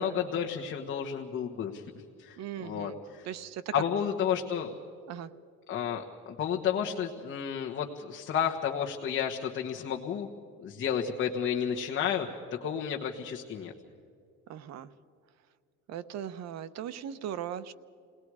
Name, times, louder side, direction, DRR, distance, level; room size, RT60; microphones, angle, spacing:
voice 1, 0.0-1.8 2.2-3.3 3.7-4.7 5.7-10.3 10.6-12.3 12.6-13.7, left 8 dB, 40° left, 0 dB, 1.5 m, -31 dB
voice 2, 2.4-3.0 3.2-3.7 5.1-5.3 14.5-14.9 15.9-17.7, right 10 dB, 60° right, 14 dB, 0.9 m, -38 dB
29.0 x 19.0 x 4.9 m, 2.3 s
cardioid pair, 130°, 30 cm